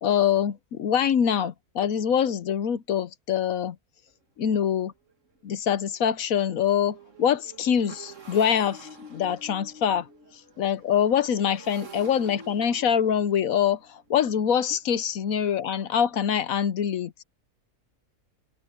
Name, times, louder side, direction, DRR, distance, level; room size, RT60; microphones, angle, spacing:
voice 1, 0.0-3.8 4.4-4.9 5.4-10.1 10.6-17.2, left 8 dB, 65° left, 1.2 m, -24 dB
Motorcycle, 4.1-4.2 4.6-4.8 5.1-16.7, right 2 dB, 50° right, 2.5 m, -48 dB
omnidirectional pair, 1.7 m